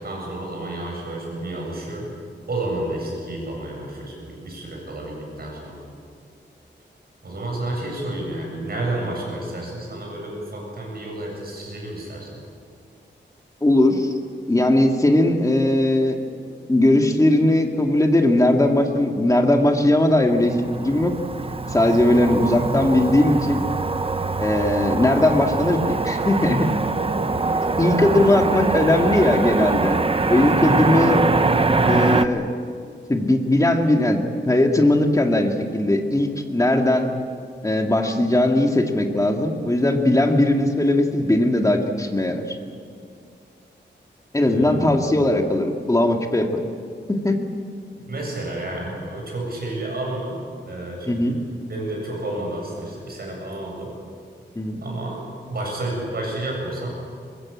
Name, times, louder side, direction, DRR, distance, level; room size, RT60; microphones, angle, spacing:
voice 1, 0.0-2.1 2.5-5.8 7.2-12.3 27.9-28.3 30.7-31.0 44.4-44.9 48.1-50.4 50.7-51.4 51.7-53.9 54.8-56.9, right 1 dB, 55° right, -1 dB, 8.0 m, -30 dB
voice 2, 13.6-14.1 14.5-16.2 16.7-20.6 20.8-21.1 21.4-23.6 24.4-26.7 27.8-30.0 30.3-31.2 31.9-32.5 33.1-37.1 37.6-42.6 44.3-46.6 47.1-47.4 51.1-51.3 54.6-54.8, left 1 dB, 15° left, 3 dB, 2.1 m, -19 dB
Motor vehicle (road), 20.3-32.3, right 3 dB, 30° right, 0.9 m, -23 dB
23.0 x 21.0 x 8.7 m, 2.2 s
wide cardioid pair, 150°, 19 cm